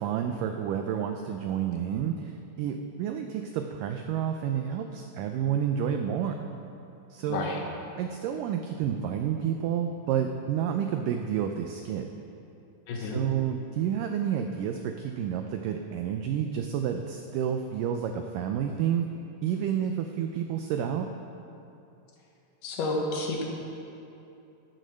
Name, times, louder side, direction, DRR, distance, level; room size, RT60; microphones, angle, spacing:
voice 1, 0.0-6.5 7.1-7.5 8.0-12.1 13.0-19.1 19.4-21.1, right 9 dB, 90° right, 5 dB, 1.9 m, -30 dB
voice 2, 7.3-7.6 12.9-13.2 22.6-23.4, left 2 dB, 80° left, 0 dB, 3.3 m, -30 dB
16.5 x 6.4 x 6.3 m, 2.8 s
omnidirectional pair, 4.5 m